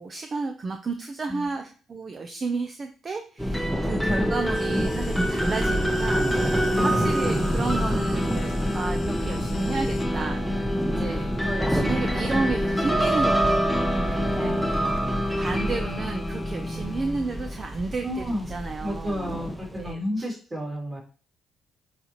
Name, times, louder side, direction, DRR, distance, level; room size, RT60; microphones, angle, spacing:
voice 1, 0.0-14.8 15.3-19.3 19.7-20.2, right 4 dB, 40° right, 5 dB, 0.7 m, -32 dB
sound 1, 3.4-19.9, equal, ahead, 0.9 m, -25 dB
sound 2, 4.5-10.1, left 6 dB, 55° left, 0.8 m, -42 dB
voice 2, 6.7-7.4 10.9-11.3 14.4-15.2 16.7-16.8 18.0-18.5 18.8-21.0, equal, 20° right, -2 dB, 3.2 m, -32 dB
8.8 x 4.2 x 3.1 m, 0.39 s
cardioid pair, 90°, 0 cm